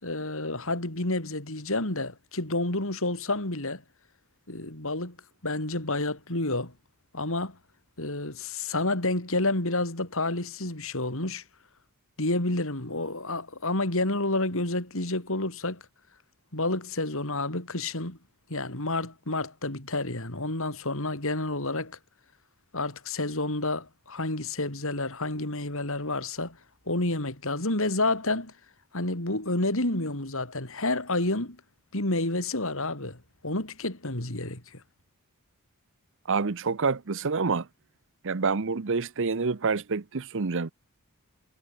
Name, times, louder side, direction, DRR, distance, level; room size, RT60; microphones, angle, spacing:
voice 1, 0.0-3.8 4.5-5.2 5.4-6.7 7.1-7.6 8.0-11.4 12.2-15.8 16.5-18.2 18.5-22.0 22.7-26.6 26.9-28.5 28.9-31.6 31.9-33.2 33.4-34.8, left 2 dB, 65° left, 4.6 m, -29 dB
voice 2, 36.3-37.7 38.2-40.7, right 4 dB, 60° right, 0.8 m, -27 dB
head